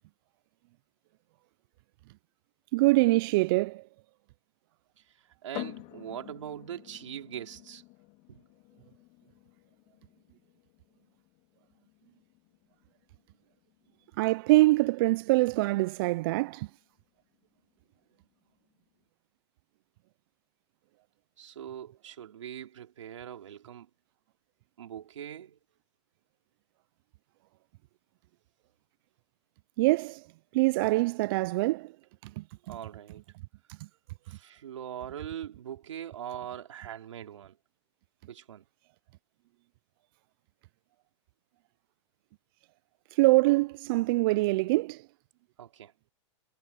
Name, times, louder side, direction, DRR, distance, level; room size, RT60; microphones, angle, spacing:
voice 1, 2.7-3.8 14.2-16.7 29.8-30.2 30.5-31.9 32.2-32.4 43.1-45.0, right 21 dB, 50° right, 0.4 m, -24 dB
voice 2, 5.0-7.8 8.3-8.4 21.4-23.9 24.8-25.6 32.7-33.2 33.8-33.9 34.2-37.6 38.3-38.6 45.6-45.9, right 10 dB, 85° right, 3.3 m, -42 dB
sound 1, 5.5-19.0, left 24 dB, 45° left, 2.9 m, -50 dB
hypercardioid pair, 135°, 15 cm